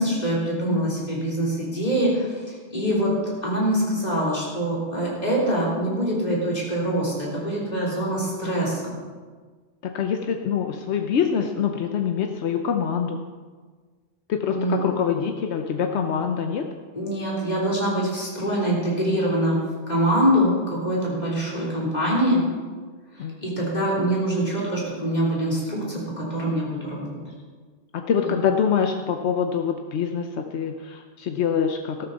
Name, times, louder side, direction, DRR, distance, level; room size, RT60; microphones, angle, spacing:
voice 1, 0.0-9.0 14.4-14.8 16.9-22.4 23.2-27.2, right 1 dB, 40° left, -5 dB, 3.8 m, -24 dB
voice 2, 9.8-13.2 14.3-16.6 23.2-23.3 27.9-32.1, left 7 dB, 85° left, 4 dB, 1.0 m, -25 dB
14.0 x 12.5 x 4.1 m, 1.5 s
omnidirectional pair, 1.1 m